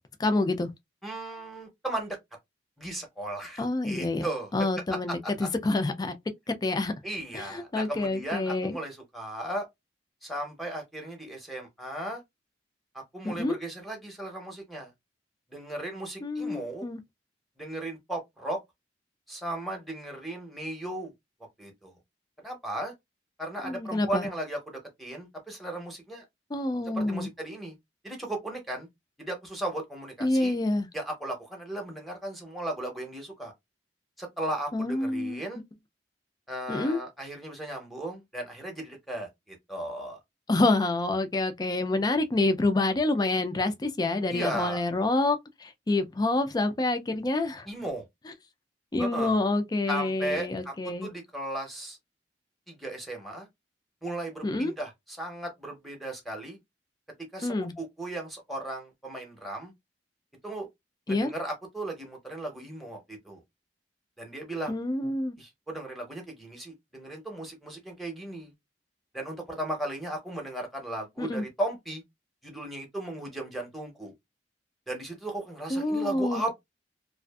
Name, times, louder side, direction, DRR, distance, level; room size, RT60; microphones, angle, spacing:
voice 1, 0.2-0.7 3.6-4.3 4.5-6.1 6.6-6.9 7.3-8.8 13.2-13.6 16.2-17.0 23.6-24.3 26.5-27.3 30.2-30.9 34.7-35.4 36.7-37.0 40.5-47.7 48.9-51.1 54.4-54.7 57.4-57.7 61.1-61.3 64.7-65.3 71.2-71.5 75.7-76.4, left 2 dB, 25° left, 0.4 m, -27 dB
voice 2, 1.0-2.2 2.8-4.5 5.2-5.5 7.0-9.7 10.2-12.2 12.9-14.9 15.5-16.9 17.6-18.6 19.3-21.1 21.6-21.9 22.4-22.9 23.4-26.2 26.9-27.8 28.0-28.9 29.2-30.6 30.9-33.5 34.2-35.6 36.5-40.2 44.3-44.8 47.7-48.0 49.0-49.4 49.9-50.7 51.0-52.0 52.7-53.5 54.0-56.6 57.3-59.7 60.4-60.7 61.1-63.4 64.2-64.8 65.4-68.5 69.1-72.0 72.4-74.1 74.9-76.6, right 1 dB, ahead, 0.8 m, -36 dB
2.5 x 2.4 x 2.3 m
head